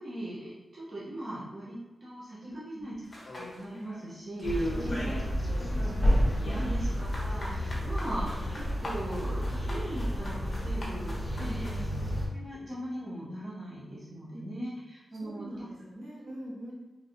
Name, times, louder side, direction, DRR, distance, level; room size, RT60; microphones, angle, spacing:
voice 1, 0.0-2.9 3.4-5.2 5.7-11.8 12.3-15.6, right 1 dB, 35° right, -9 dB, 1.1 m, -40 dB
voice 2, 2.4-2.8 4.7-5.9 6.5-6.7 11.4-11.8 14.3-14.4 15.2-16.7, equal, 90° right, -6 dB, 1.1 m, -42 dB
sound 1, 3.1-4.0 4.4-5.3 5.6-11.8, equal, 45° left, 0.8 m, -39 dB
sound 2, 4.4-12.3, equal, 5° right, 0.9 m, -30 dB
3.1 x 2.9 x 2.6 m, 1.1 s
cardioid pair, 70°, 0 cm